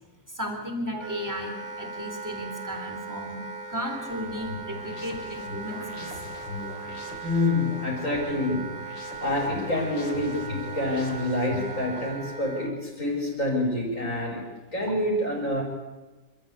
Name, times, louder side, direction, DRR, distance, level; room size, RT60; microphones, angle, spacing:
voice 1, 0.3-6.2 14.9-15.0, equal, 10° right, 3 dB, 3.6 m, -35 dB
Wind instrument woodwind instrument, 0.9-12.7, right 4 dB, 90° right, 2.4 m, -39 dB
sound 1, 4.1-12.1, left 3 dB, 85° left, 3.4 m, -41 dB
voice 2, 7.2-8.9 9.2-15.6, left 1 dB, 45° left, -2 dB, 5.6 m, -27 dB
27.5 x 13.0 x 8.5 m, 1.2 s
omnidirectional pair, 2.0 m